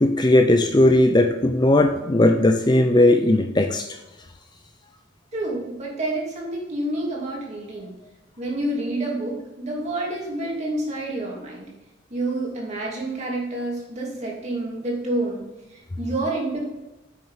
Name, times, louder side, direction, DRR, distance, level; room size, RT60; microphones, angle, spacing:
voice 1, 0.0-4.0, left 1 dB, 20° left, 6 dB, 0.5 m, -17 dB
voice 2, 5.3-7.9 8.4-11.7 12.1-16.7, right 2 dB, 35° right, -3 dB, 2.8 m, -28 dB
8.8 x 6.6 x 5.6 m, 1.0 s
head